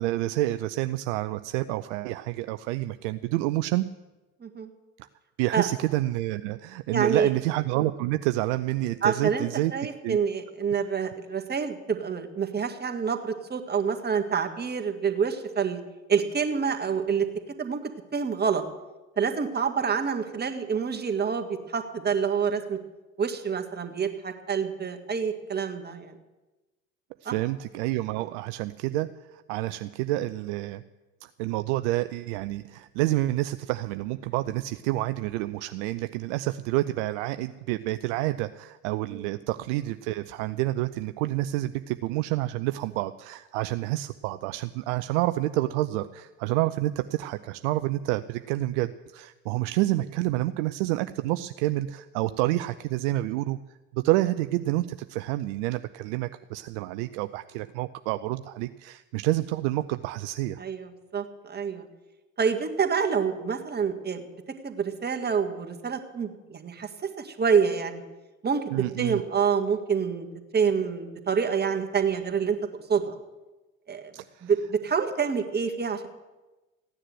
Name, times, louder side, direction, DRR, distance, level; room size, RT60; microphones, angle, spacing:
voice 1, 0.0-3.8 5.0-5.1 5.4-9.7 10.0-10.2 27.2-30.8 31.2-53.6 53.9-60.6 68.7-69.2 74.1-74.5, right 17 dB, 60° right, 12 dB, 0.6 m, -28 dB
voice 2, 4.4-4.7 5.5-5.7 6.9-7.3 9.0-9.5 9.7-15.8 16.1-17.3 17.6-17.8 18.1-18.6 19.2-22.8 23.2-26.2 27.3-27.4 39.1-39.2 60.6-61.9 62.4-64.2 64.6-66.9 67.2-68.0 68.4-68.6 69.0-70.3 70.5-72.6 72.9-73.2 73.9-74.1 74.4-76.1, right 6 dB, 25° right, 5 dB, 1.8 m, -27 dB
15.5 x 10.0 x 7.8 m, 1.1 s
figure-of-eight pair, 70°, 41 cm